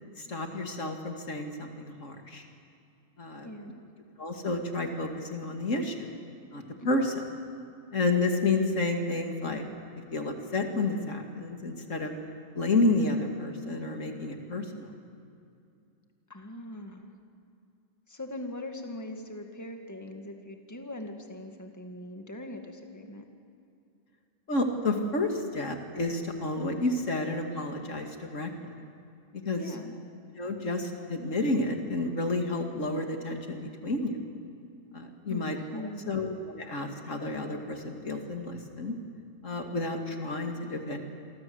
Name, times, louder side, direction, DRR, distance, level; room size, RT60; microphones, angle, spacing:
voice 1, 0.2-2.4 3.2-3.5 4.2-6.1 6.5-7.1 7.9-9.6 10.1-12.1 12.6-14.9 24.5-28.5 29.3-29.7 30.4-34.2 34.9-35.6 36.1-39.0 39.4-41.0, left 2 dB, 70° left, 3 dB, 2.7 m, -30 dB
voice 2, 3.4-3.8 6.8-7.0 16.3-17.1 18.1-23.3 29.6-30.0 35.3-35.5 35.7-36.2, left 1 dB, 15° left, 3 dB, 2.1 m, -41 dB
28.0 x 24.0 x 8.0 m, 2.5 s
omnidirectional pair, 1.3 m